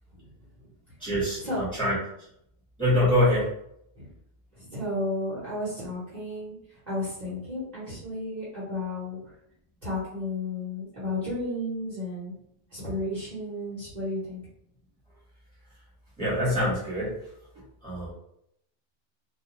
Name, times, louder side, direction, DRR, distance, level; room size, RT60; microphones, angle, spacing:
voice 1, 1.0-2.0 2.8-3.5 16.2-17.2 17.8-18.1, left 1 dB, 5° left, -8 dB, 1.1 m, -24 dB
voice 2, 4.5-9.3 9.8-12.3 12.7-14.4, left 1 dB, 40° right, -9 dB, 1.0 m, -33 dB
2.4 x 2.2 x 2.9 m, 0.74 s
omnidirectional pair, 1.3 m